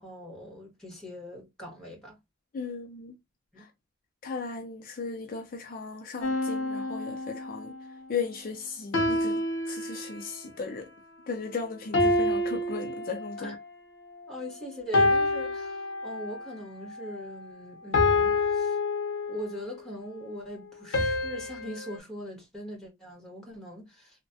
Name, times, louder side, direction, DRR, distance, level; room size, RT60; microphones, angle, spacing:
voice 1, 0.0-2.2 3.5-3.6 13.4-13.6 14.3-18.8 19.3-24.3, equal, 5° left, 1.3 m, -41 dB
voice 2, 2.5-3.1 4.2-7.7 8.1-9.4 9.7-10.9 11.3-13.6, left 4 dB, 50° left, 0.4 m, -36 dB
sound 1, 6.2-7.9 8.9-10.4 11.9-13.6 14.9-16.4 17.9-19.7 20.9-22.0, left 2 dB, 80° left, 0.7 m, -27 dB
3.1 x 2.1 x 2.6 m
head